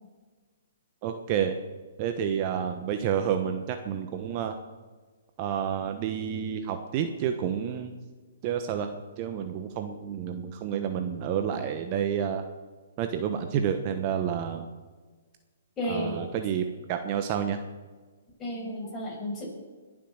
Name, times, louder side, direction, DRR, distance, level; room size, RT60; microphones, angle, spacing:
voice 1, 1.0-1.5 2.0-4.5 5.4-7.9 8.4-8.9 9.2-12.4 13.0-14.7 15.9-17.6, right 8 dB, 35° right, 7 dB, 1.1 m, -29 dB
voice 2, 15.8-16.2 18.4-19.5, equal, 15° left, -3 dB, 6.2 m, -32 dB
21.0 x 7.6 x 6.5 m, 1.4 s
hypercardioid pair, 150°, 0 cm